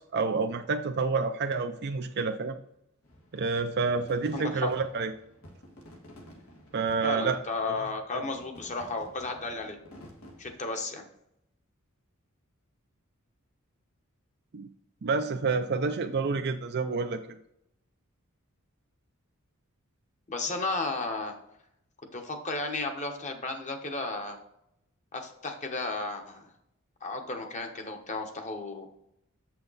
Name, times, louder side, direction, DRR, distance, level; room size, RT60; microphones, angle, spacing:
voice 1, 0.1-2.6 3.3-5.1 6.7-7.4 14.5-14.7 15.0-17.2, right 4 dB, 50° right, 6 dB, 0.5 m, -28 dB
sound 1, 3.0-10.5, equal, 80° left, 1.7 m, -52 dB
voice 2, 4.3-4.7 7.0-9.8 10.4-11.0 20.3-21.3 22.1-24.4 25.1-26.5 27.0-28.9, left 3 dB, 35° left, 4 dB, 1.1 m, -33 dB
7.7 x 5.8 x 4.1 m, 0.78 s
head